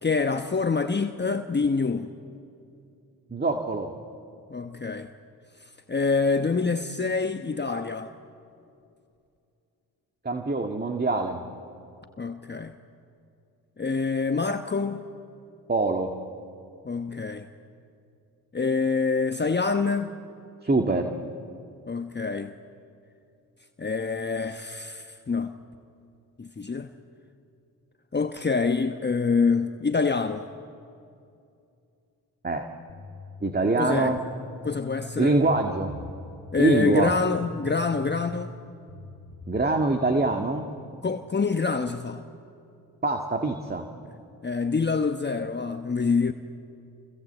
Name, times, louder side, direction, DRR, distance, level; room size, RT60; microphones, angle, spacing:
voice 1, 0.0-2.1 4.5-5.1 5.9-8.1 12.2-12.7 13.8-15.1 16.8-17.5 18.5-20.1 21.9-22.5 23.8-25.6 26.4-26.9 28.1-30.5 33.8-34.2 34.6-35.3 36.5-38.6 41.0-42.2 44.4-46.3, left 4 dB, 25° left, 7 dB, 1.1 m, -26 dB
voice 2, 3.3-3.9 10.2-11.4 15.7-16.1 20.6-21.1 32.4-32.7 33.4-34.2 35.2-35.9 36.6-37.1 39.5-40.7 43.0-43.9, right 3 dB, 20° right, 5 dB, 2.0 m, -24 dB
sound 1, 32.9-39.8, left 2 dB, 55° left, 2.6 m, -43 dB
28.0 x 25.5 x 8.1 m, 2.5 s
supercardioid pair, 50°, 42 cm